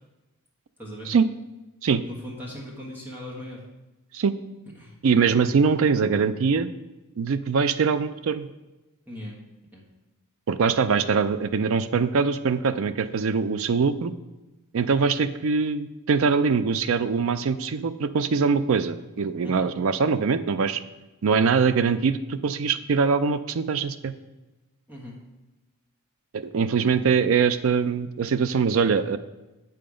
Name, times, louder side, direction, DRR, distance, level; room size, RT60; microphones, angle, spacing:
voice 1, 0.8-1.1 2.0-3.7 4.7-4.9 9.1-9.4 9.7-9.8 19.4-19.7 24.9-25.2, left 1 dB, 10° right, -4 dB, 1.4 m, -39 dB
voice 2, 5.0-6.7 7.2-8.5 10.5-14.1 14.7-20.8 21.2-24.1 26.3-29.2, right 5 dB, 65° right, 12 dB, 0.4 m, -23 dB
7.8 x 5.7 x 5.0 m, 1.1 s
head